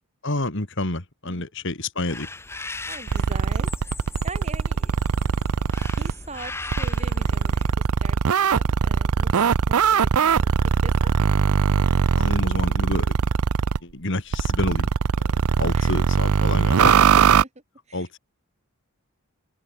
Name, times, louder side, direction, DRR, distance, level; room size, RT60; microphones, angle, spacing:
voice 1, 0.2-2.3 12.1-13.1 13.8-14.9 15.2-17.0 17.9-18.2, left 2 dB, 55° left, 2.8 m, -28 dB
sound 1, 2.1-7.7, left 2 dB, 10° left, 2.1 m, -38 dB
voice 2, 2.8-3.7 4.2-5.4 6.0-9.4 9.7-10.5 10.8-11.1 15.7-16.0 17.4-17.5 17.9-18.2, right 3 dB, 30° right, 5.5 m, -41 dB
sound 2, 3.1-6.1 6.7-13.8 14.3-17.4, right 6 dB, 85° right, 0.5 m, -21 dB
head